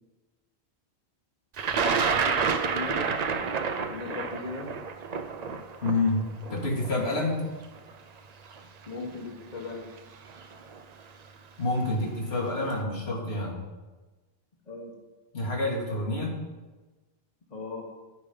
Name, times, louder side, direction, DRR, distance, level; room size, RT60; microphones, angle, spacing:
Thunder, 1.6-7.6 8.5-8.6 9.7-10.0 10.3-10.8, right 5 dB, 50° right, 0.6 m, -29 dB
voice 1, 2.1-3.0 3.9-4.7 8.9-9.9 14.7-14.9 17.5-17.9, left 3 dB, 40° left, 0 dB, 1.3 m, -37 dB
voice 2, 5.8-6.2 6.5-7.5 11.6-13.6 15.3-16.4, left 2 dB, 80° left, -2 dB, 2.1 m, -28 dB
10.5 x 5.0 x 5.2 m, 1.2 s
omnidirectional pair, 1.1 m